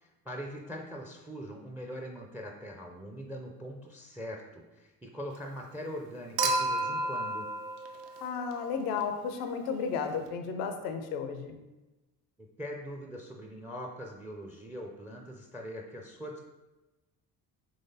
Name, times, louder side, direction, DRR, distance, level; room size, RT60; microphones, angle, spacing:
voice 1, 0.0-7.5 12.4-16.4, equal, 5° right, 2 dB, 0.3 m, -42 dB
Human group actions / Chink clink / Liquid, 6.4-8.8 10.3-10.4, right 2 dB, 65° right, 0.6 m, -31 dB
voice 2, 8.2-11.6, left 6 dB, 75° left, 7 dB, 0.5 m, -33 dB
3.9 x 2.9 x 2.7 m, 1.1 s
hypercardioid pair, 50°, 48 cm